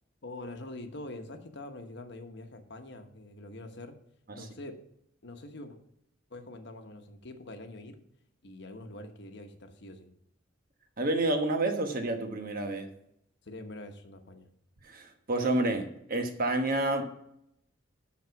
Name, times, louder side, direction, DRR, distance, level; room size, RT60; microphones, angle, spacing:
voice 1, 0.2-4.0 4.3-4.8 5.2-5.8 6.3-8.0 8.4-10.1 13.4-14.5, left 2 dB, 60° left, 6 dB, 1.2 m, -44 dB
voice 2, 11.0-12.9 14.8-17.0, right 2 dB, 50° right, 5 dB, 1.2 m, -29 dB
12.0 x 4.1 x 5.8 m, 0.77 s
head